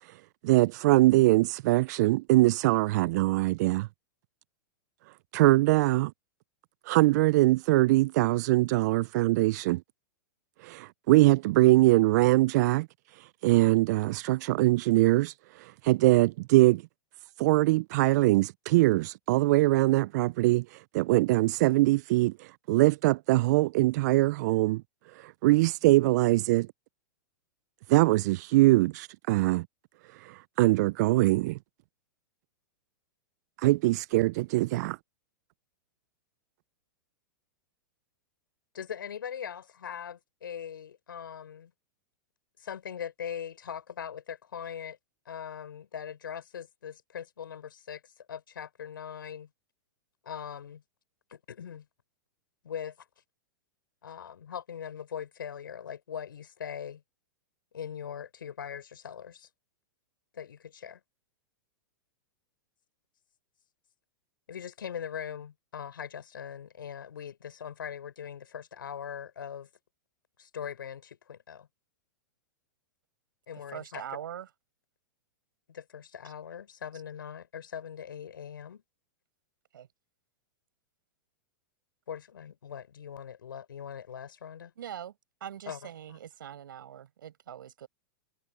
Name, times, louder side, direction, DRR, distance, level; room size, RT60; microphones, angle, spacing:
voice 1, 0.0-3.9 5.3-6.1 6.9-9.8 10.6-16.8 17.4-24.8 25.1-26.7 27.9-29.7 30.1-31.6 33.6-35.0, right 19 dB, 55° right, 0.5 m, -23 dB
voice 2, 38.7-41.7 42.6-45.0 45.2-49.5 50.2-50.8 51.3-51.9 52.6-52.9 54.0-57.0 57.7-59.5 60.3-61.0 64.5-69.7 70.4-71.7 73.5-74.0 75.7-78.8 82.1-84.7 85.7-85.9, left 8 dB, 80° left, 4.6 m, -41 dB
voice 3, 73.7-74.5 79.7-79.9 84.8-85.1 85.4-87.9, right 10 dB, 75° right, 6.2 m, -42 dB
hypercardioid pair, 110°, 11 cm